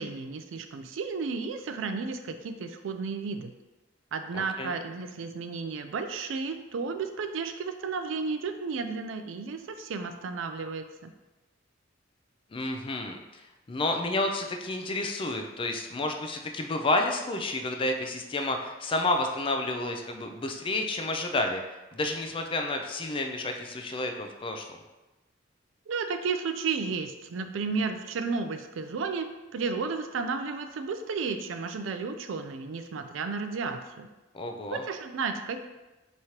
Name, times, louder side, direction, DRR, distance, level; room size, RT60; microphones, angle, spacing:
voice 1, 0.0-3.5 4.1-11.1 25.9-34.1 34.7-35.7, right 4 dB, 75° right, 8 dB, 0.4 m, -33 dB
voice 2, 4.3-4.7 12.5-21.6 21.9-24.8 34.3-34.8, left 2 dB, 25° left, 4 dB, 0.4 m, -30 dB
5.0 x 3.1 x 2.8 m, 1.1 s
head